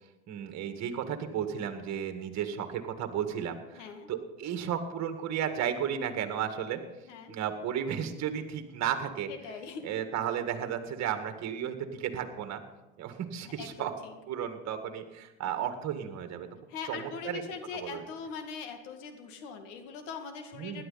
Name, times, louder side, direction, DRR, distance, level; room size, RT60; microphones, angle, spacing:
voice 1, 0.3-6.8 7.3-9.3 9.8-12.6 13.0-13.9 14.3-16.5 16.9-17.4 17.7-18.0 20.5-20.8, right 9 dB, 45° right, 7 dB, 1.9 m, -34 dB
voice 2, 3.8-4.1 7.1-7.4 9.3-10.0 13.4-14.1 16.7-20.8, left 6 dB, 75° left, 6 dB, 2.2 m, -41 dB
16.5 x 11.5 x 4.1 m, 1.1 s
supercardioid pair, 95°, 37 cm